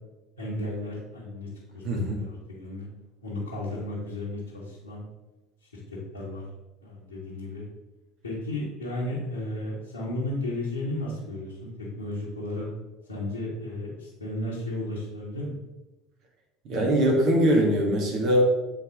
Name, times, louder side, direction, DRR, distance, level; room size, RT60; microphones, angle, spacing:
voice 1, 0.4-1.5 1.7-2.8 3.2-5.0 5.6-5.8 6.1-6.4 6.8-7.6 8.2-12.7 13.1-15.5, left 1 dB, 85° left, -8 dB, 1.3 m, -34 dB
voice 2, 1.8-2.2 16.6-18.4, equal, 55° right, -1 dB, 1.9 m, -22 dB
7.8 x 4.1 x 3.7 m, 1.1 s
figure-of-eight pair, 65°, 0 cm